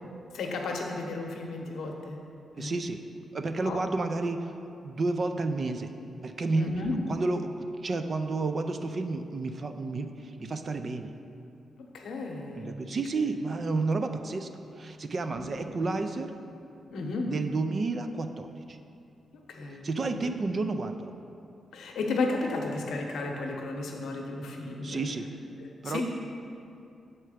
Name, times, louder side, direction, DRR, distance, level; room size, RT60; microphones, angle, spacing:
voice 1, 0.3-2.2 2.5-2.7 3.6-3.8 6.5-6.9 11.9-12.8 15.3-15.5 16.9-17.3 19.5-19.9 20.1-20.3 21.7-25.1 25.6-26.0, left 3 dB, 85° left, 1 dB, 0.8 m, -33 dB
voice 2, 2.6-3.0 3.3-4.5 4.8-5.9 6.2-6.7 7.1-11.1 12.6-14.5 14.8-16.3 17.3-18.8 19.8-21.1 24.8-25.3 25.8-26.0, right 3 dB, 45° right, 7 dB, 0.4 m, -31 dB
6.7 x 4.4 x 4.9 m, 2.6 s
cardioid pair, 90°, 0 cm